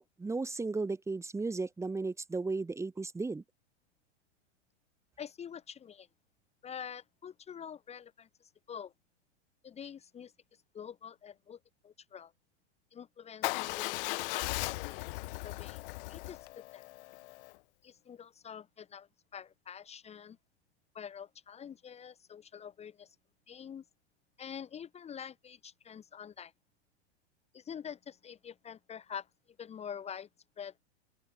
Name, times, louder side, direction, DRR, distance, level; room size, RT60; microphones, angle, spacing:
voice 1, 0.0-3.4, right 3 dB, 10° right, 3.1 m, -35 dB
voice 2, 5.2-6.1 6.6-8.9 9.6-10.3 10.7-12.3 12.9-15.1 15.4-16.8 17.8-20.4 20.9-23.2 23.5-23.8 24.4-26.5 27.5-29.3 29.6-30.3 30.6-30.8, left 8 dB, 20° left, 2.6 m, -46 dB
Motorcycle / Engine starting / Idling, 13.4-17.5, left 22 dB, 50° left, 1.0 m, -37 dB
open air
supercardioid pair, 145°, 35 cm